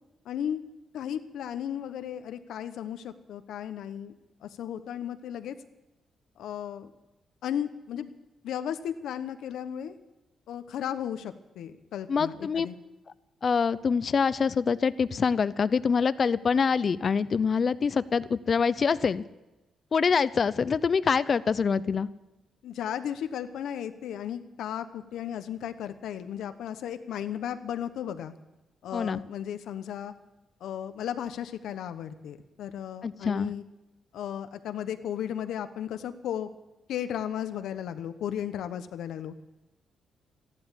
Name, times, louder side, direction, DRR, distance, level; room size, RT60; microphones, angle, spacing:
voice 1, 0.2-0.6 0.9-4.1 4.4-5.5 6.4-6.9 7.4-8.1 8.4-9.9 10.5-12.7 22.6-28.3 28.8-30.1 30.6-33.6 34.1-36.5 36.9-39.3, left 9 dB, 85° left, 10 dB, 1.0 m, -35 dB
voice 2, 12.1-12.7 13.4-19.2 19.9-22.1 28.9-29.2 33.0-33.5, left 5 dB, 45° left, 16 dB, 0.6 m, -25 dB
14.5 x 11.5 x 8.3 m, 1.0 s
cardioid pair, 105°, 0 cm